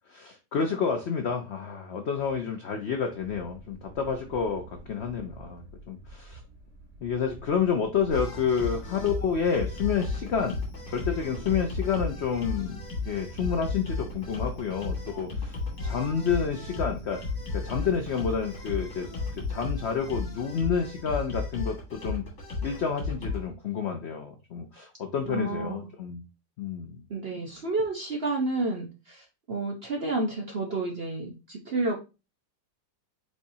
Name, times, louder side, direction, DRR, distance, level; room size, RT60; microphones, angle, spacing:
voice 1, 0.1-6.4 7.0-10.6 10.9-12.8 13.1-17.2 17.5-22.2 22.6-26.2 26.6-27.1, left 6 dB, 75° left, 5 dB, 0.6 m, -29 dB
sound 1, 3.2-20.3, right 2 dB, 10° right, 1.2 m, -47 dB
sound 2, 8.1-23.4, left 3 dB, 45° left, 2.0 m, -34 dB
voice 2, 25.3-25.9 27.1-31.9, right 2 dB, 50° right, 1 dB, 0.7 m, -30 dB
4.7 x 4.1 x 2.6 m, 0.28 s
omnidirectional pair, 1.9 m